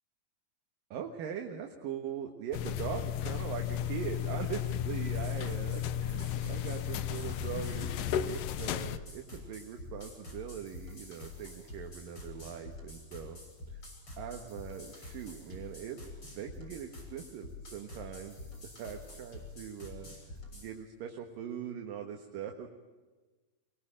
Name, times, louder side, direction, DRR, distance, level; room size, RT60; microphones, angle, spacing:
voice 1, 0.9-13.4 13.7-13.8 14.2-20.2 20.5-22.7, right 8 dB, 70° right, 4 dB, 3.1 m, -41 dB
sound 1, 2.5-9.0, left 10 dB, 70° left, 2.3 m, -34 dB
sound 2, 4.9-20.7, left 2 dB, 35° left, 7.9 m, -47 dB
23.5 x 22.0 x 8.9 m, 1.3 s
omnidirectional pair, 4.4 m